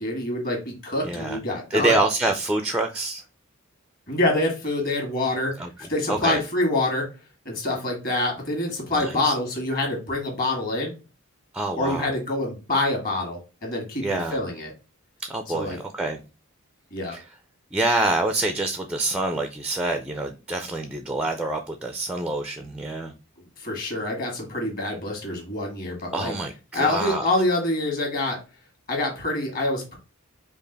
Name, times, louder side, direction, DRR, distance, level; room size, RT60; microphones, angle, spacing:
voice 1, 0.0-1.9 4.1-5.5 5.9-7.0 7.4-10.9 11.8-14.7 15.5-15.8 16.9-17.1 23.6-26.3 26.7-28.4 28.9-30.0, left 2 dB, 40° left, 1 dB, 1.8 m, -26 dB
voice 2, 1.0-1.4 1.7-3.2 5.6-6.4 9.0-9.3 11.5-12.1 14.0-14.4 15.2-16.2 17.1-17.3 17.7-23.1 26.1-27.3, right 2 dB, 5° right, 6 dB, 0.4 m, -26 dB
5.2 x 2.4 x 3.9 m, 0.31 s
head